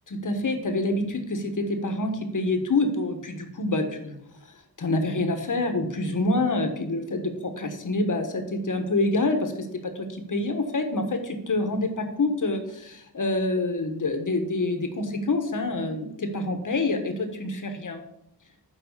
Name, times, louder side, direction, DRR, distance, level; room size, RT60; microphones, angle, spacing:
voice 1, 0.1-4.1 4.8-18.0, left 2 dB, 55° left, 6 dB, 1.3 m, -27 dB
7.3 x 5.2 x 6.7 m, 0.77 s
wide cardioid pair, 125°, 38 cm